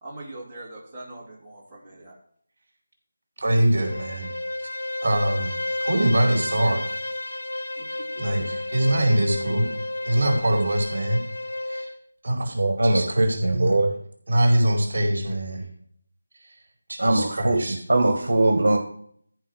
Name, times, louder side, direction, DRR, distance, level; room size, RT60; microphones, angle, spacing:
voice 1, 0.0-2.2 7.8-8.2, right 1 dB, 15° right, -7 dB, 2.5 m, -42 dB
voice 2, 3.4-4.3 5.0-5.5 5.8-6.9 8.2-9.7 10.0-11.2 11.7-11.9 12.2-12.5 12.9-13.7 14.3-15.6 16.9-17.8, right 1 dB, 50° right, 1 dB, 4.4 m, -23 dB
Bowed string instrument, 3.6-12.0, left 2 dB, 80° left, 1.9 m, -32 dB
voice 3, 12.5-13.9 17.0-18.8, right 2 dB, 70° right, 5 dB, 1.7 m, -21 dB
13.5 x 4.9 x 6.4 m, 0.62 s
figure-of-eight pair, 165°, 0 cm